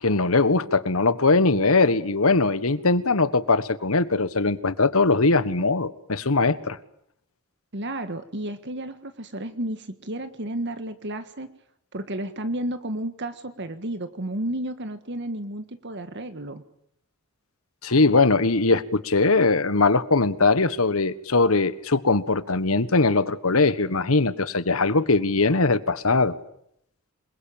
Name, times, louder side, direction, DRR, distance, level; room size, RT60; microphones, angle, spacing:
voice 1, 0.0-6.8 17.8-26.4, left 3 dB, 75° left, 1.5 m, -21 dB
voice 2, 7.7-11.5 11.9-16.6, right 1 dB, 55° right, 1.7 m, -32 dB
27.5 x 22.0 x 9.0 m
head